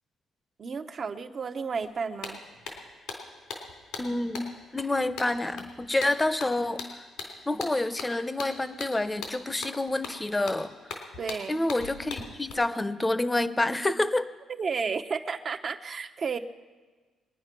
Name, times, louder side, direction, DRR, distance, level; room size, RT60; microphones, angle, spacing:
voice 1, 0.6-2.4 11.2-11.6 14.5-16.4, right 5 dB, 45° right, 7 dB, 0.9 m, -32 dB
sound 1, 1.8-1.9 2.2-12.5, left 4 dB, 90° left, 3.5 m, -40 dB
voice 2, 4.0-7.0 7.5-10.7 11.5-14.3, left 2 dB, 15° left, 13 dB, 0.8 m, -28 dB
22.5 x 9.8 x 6.1 m, 1.4 s
cardioid pair, 90°, 0 cm